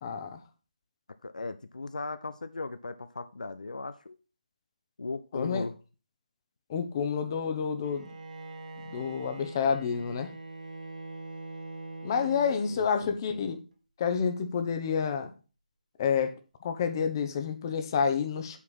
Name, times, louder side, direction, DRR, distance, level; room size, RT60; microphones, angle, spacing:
voice 1, 0.0-0.4 5.3-5.7 6.7-8.0 8.8-10.3 12.0-13.6 14.0-15.3 16.0-16.3 16.6-18.6, left 6 dB, 30° left, 8 dB, 1.0 m, -29 dB
voice 2, 1.2-4.2 5.0-5.8 12.7-13.5, left 3 dB, 70° left, 12 dB, 0.6 m, -38 dB
Bowed string instrument, 7.8-13.2, right 2 dB, 60° right, 1.7 m, -43 dB
8.3 x 4.7 x 5.5 m, 0.34 s
figure-of-eight pair, 155°, 4 cm